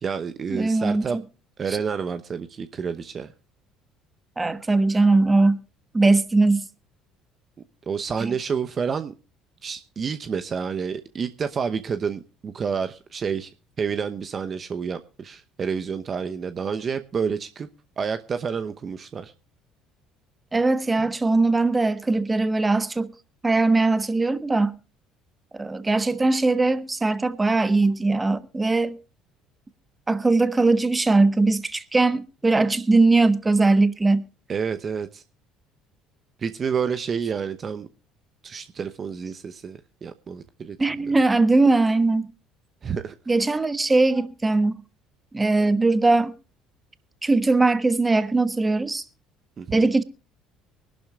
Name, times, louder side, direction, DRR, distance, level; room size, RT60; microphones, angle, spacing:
voice 1, 0.0-1.2 1.6-3.3 7.9-9.1 9.6-13.5 13.8-17.7 18.0-19.3 34.5-35.2 36.4-37.9 38.4-41.2 42.8-43.2 49.6-49.9, right 6 dB, 40° right, 0.8 m, -29 dB
voice 2, 0.5-1.1 4.4-5.6 5.9-6.7 20.5-23.1 23.4-24.7 25.5-29.0 30.1-34.3 40.8-42.3 43.3-44.8 45.3-46.3 47.2-49.0 49.7-50.0, right 3 dB, 20° right, 1.3 m, -20 dB
24.0 x 11.5 x 2.4 m
hypercardioid pair, 65°, 0 cm